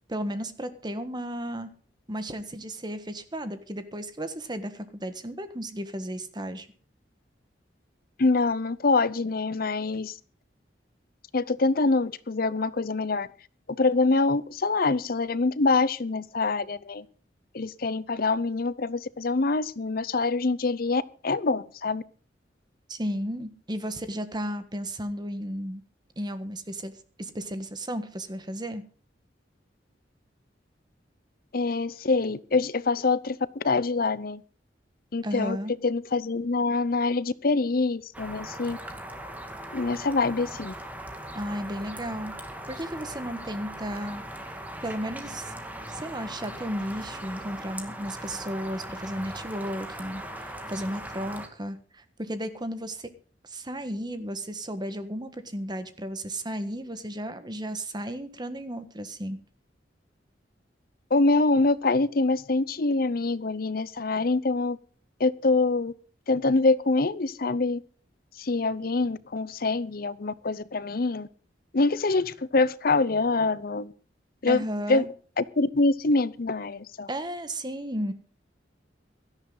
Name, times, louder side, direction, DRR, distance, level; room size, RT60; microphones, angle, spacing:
voice 1, 0.1-1.7 2.1-6.7 22.9-25.8 26.2-26.9 27.2-28.8 35.2-35.7 41.3-42.3 42.7-44.2 44.8-45.5 45.9-53.1 53.4-59.4 74.5-75.1 77.1-78.1, equal, 25° right, 10 dB, 1.5 m, -34 dB
voice 2, 8.2-10.1 11.3-13.3 13.7-17.0 17.5-22.0 31.5-34.4 35.1-35.6 35.8-38.8 39.7-40.7 61.1-64.8 65.2-65.9 66.3-67.8 68.4-71.3 71.7-73.9 74.4-74.6 74.9-75.1 75.4-77.1, left 3 dB, 55° left, 18 dB, 0.7 m, -25 dB
sound 1, 38.1-51.5, right 1 dB, 10° right, 2.1 m, -39 dB
17.0 x 13.0 x 4.0 m, 0.41 s
head